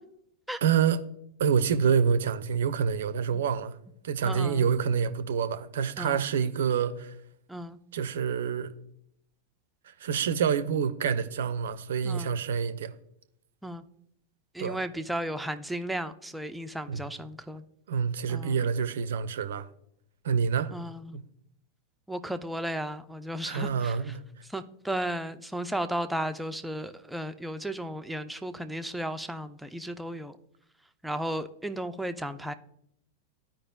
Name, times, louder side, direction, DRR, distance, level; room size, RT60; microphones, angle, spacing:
voice 1, 0.6-1.0 1.4-3.8 4.0-7.2 7.9-8.7 9.8-12.9 14.6-14.8 16.9-17.1 17.9-19.7 20.2-20.7 21.1-21.2 23.4-24.2, right 7 dB, 60° right, 0.5 m, -27 dB
voice 2, 4.2-4.7 6.0-6.2 7.5-7.8 12.0-12.3 13.6-13.8 14.5-17.6 18.3-18.6 20.7-21.2 22.1-24.2 24.5-30.4 31.0-32.5, right 1 dB, 5° right, 0.4 m, -34 dB
13.0 x 5.1 x 2.3 m
figure-of-eight pair, 90°, 0 cm